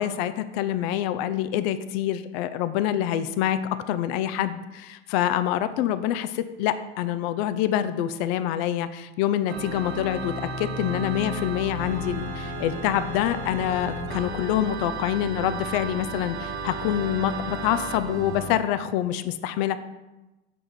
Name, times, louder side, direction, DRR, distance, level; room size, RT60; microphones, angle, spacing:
voice 1, 0.0-3.6 3.9-19.8, left 11 dB, 70° left, 12 dB, 0.7 m, -26 dB
Organ, 9.5-18.6, right 2 dB, 85° right, 1.5 m, -33 dB
6.2 x 5.2 x 6.1 m, 1.1 s
hypercardioid pair, 90°, 32 cm